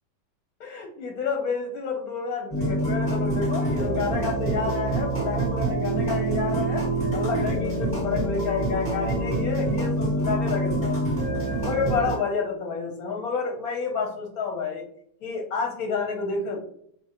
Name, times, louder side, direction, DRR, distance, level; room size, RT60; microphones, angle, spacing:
voice 1, 0.6-6.8 7.1-11.0 11.6-14.8 15.2-16.6, left 5 dB, 65° left, 2 dB, 1.0 m, -29 dB
sound 1, 2.5-12.2, right 1 dB, 5° left, 1.2 m, -26 dB
4.2 x 2.5 x 2.8 m, 0.67 s
omnidirectional pair, 1.9 m